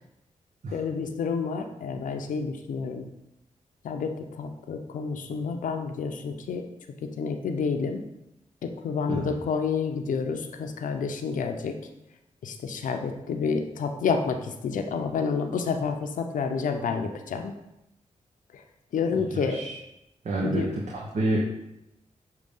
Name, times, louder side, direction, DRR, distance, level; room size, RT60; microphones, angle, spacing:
voice 1, 0.7-3.1 3.8-6.7 7.0-8.0 8.6-11.7 12.4-17.5 18.5-18.6 18.9-19.6 20.4-20.7, left 5 dB, 90° left, 5 dB, 0.6 m, -29 dB
voice 2, 19.1-19.8 20.2-21.4, right 2 dB, 65° right, -3 dB, 0.9 m, -29 dB
6.6 x 2.8 x 5.3 m, 0.88 s
cardioid pair, 55°, 13 cm